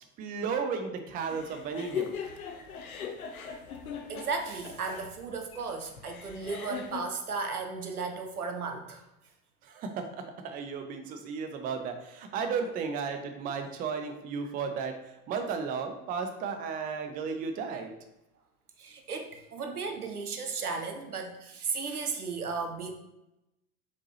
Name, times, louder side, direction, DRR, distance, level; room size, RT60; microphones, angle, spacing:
voice 1, 0.2-2.1 9.6-17.9, right 5 dB, 20° right, 6 dB, 0.4 m, -34 dB
sound 1, 1.3-7.0, left 7 dB, 70° left, 0.7 m, -39 dB
voice 2, 4.1-9.0 18.8-22.9, right 4 dB, 85° right, 5 dB, 0.7 m, -35 dB
4.5 x 3.9 x 2.8 m, 0.91 s
figure-of-eight pair, 75°, 44 cm